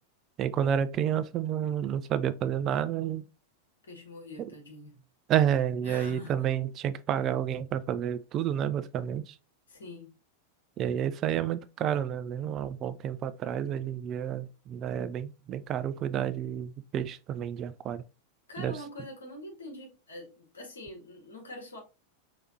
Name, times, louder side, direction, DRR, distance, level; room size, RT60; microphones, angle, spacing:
voice 1, 0.4-3.2 5.3-9.3 10.8-18.0 18.6-18.7, right 9 dB, 30° right, 0.3 m, -30 dB
voice 2, 3.8-5.0 5.8-6.6 9.7-10.1 18.5-21.8, left 1 dB, 70° left, 1.6 m, -44 dB
4.8 x 3.2 x 2.8 m
figure-of-eight pair, 90°, 0 cm